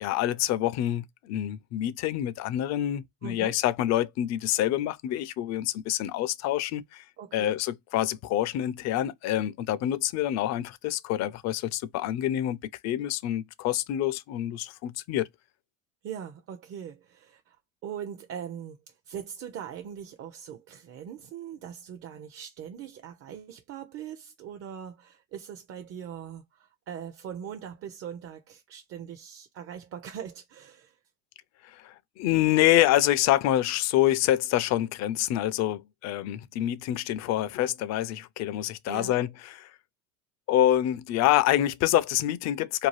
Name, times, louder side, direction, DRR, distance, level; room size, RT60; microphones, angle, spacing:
voice 1, 0.0-7.0 7.3-12.6 12.8-15.3 31.6-39.7 40.5-42.9, left 13 dB, 45° left, 0.4 m, -26 dB
voice 2, 3.2-3.5 7.2-7.5 16.0-17.6 17.8-31.0 38.9-39.2, right 8 dB, 40° right, 0.5 m, -41 dB
2.7 x 2.3 x 3.0 m
supercardioid pair, 95°, 39 cm